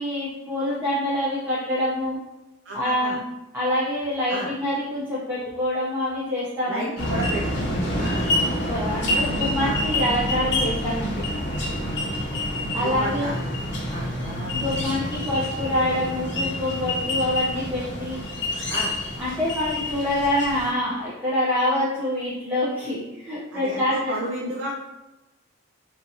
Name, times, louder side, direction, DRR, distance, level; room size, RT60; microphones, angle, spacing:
voice 1, 0.0-2.2 2.7-3.2 3.5-6.9 8.4-11.2 12.7-13.3 14.5-18.2 19.2-24.1, left 1 dB, 10° right, -9 dB, 0.5 m, -26 dB
voice 2, 2.7-3.2 4.3-4.5 6.7-8.3 9.0-9.3 9.6-9.8 11.8-12.0 12.8-13.4 13.9-14.7 18.7-18.9 23.5-24.7, right 1 dB, 65° right, -3 dB, 0.4 m, -32 dB
sound 1, 7.0-20.7, left 1 dB, 55° left, 0.7 m, -27 dB
2.6 x 2.4 x 2.7 m, 1.0 s
head